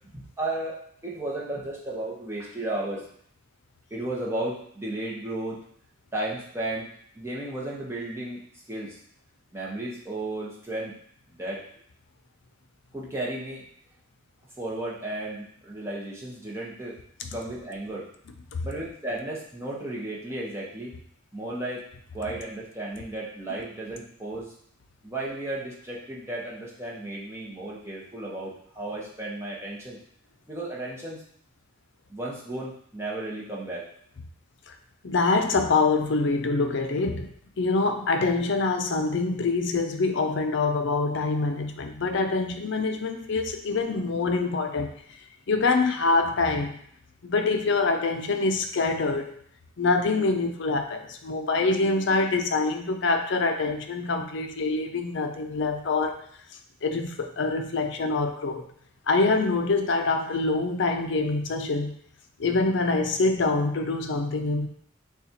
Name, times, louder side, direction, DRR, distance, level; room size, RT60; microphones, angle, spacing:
voice 1, 0.4-3.1 3.9-5.6 6.1-6.9 7.1-8.4 8.7-9.0 9.5-10.9 11.3-11.6 12.9-13.6 14.6-17.0 17.3-18.1 18.6-20.9 21.3-21.8 22.1-24.5 25.0-30.0 30.5-31.2 32.1-33.8, right 2 dB, 15° right, -5 dB, 0.9 m, -34 dB
voice 2, 35.0-44.9 45.5-46.8 47.2-49.3 49.8-56.2 56.8-58.7 59.1-61.9 62.4-64.7, left 3 dB, 60° left, 5 dB, 0.5 m, -25 dB
6.6 x 2.4 x 2.8 m, 0.63 s
head